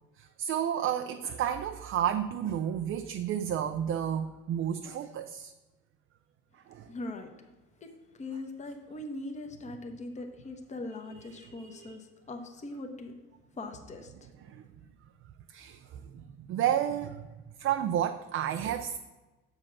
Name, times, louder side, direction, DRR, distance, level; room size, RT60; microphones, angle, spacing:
voice 1, 0.2-5.5 6.5-6.9 11.1-12.0 14.4-14.7 15.5-17.3 17.6-19.0, right 9 dB, 40° right, 8 dB, 0.4 m, -32 dB
voice 2, 6.9-7.3 7.8-7.9 8.2-13.1 13.6-14.1, left 2 dB, 20° left, 4 dB, 0.9 m, -40 dB
7.1 x 5.2 x 5.9 m, 1.1 s
cardioid pair, 125°, 33 cm